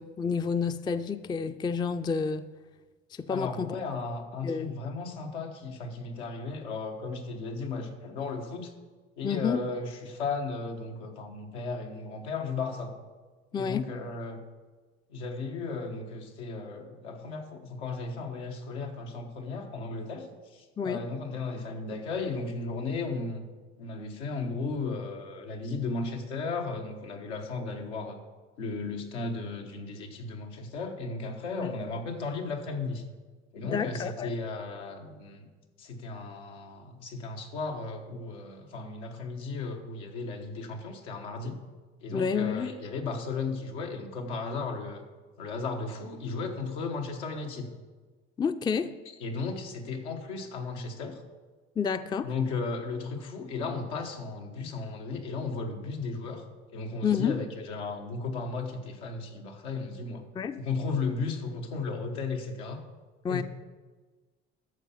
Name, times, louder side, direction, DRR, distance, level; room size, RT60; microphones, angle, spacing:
voice 1, 0.0-2.5 3.1-3.7 4.4-4.8 9.2-9.6 13.5-13.9 20.8-21.0 31.6-31.7 33.6-34.3 42.1-42.7 48.4-48.9 51.8-52.3 57.0-57.4 60.4-60.6 63.2-63.4, left 6 dB, 15° left, 12 dB, 0.3 m, -29 dB
voice 2, 3.3-8.7 9.2-12.9 13.5-14.4 15.1-20.3 20.5-23.4 23.8-28.2 28.6-33.0 33.5-35.5 35.8-41.6 42.0-45.0 45.4-47.7 49.2-51.2 52.2-56.4 56.7-60.2 60.6-62.8 63.3-63.4, left 4 dB, 85° left, 2 dB, 1.2 m, -35 dB
13.0 x 4.6 x 5.7 m, 1.4 s
hypercardioid pair, 65°, 33 cm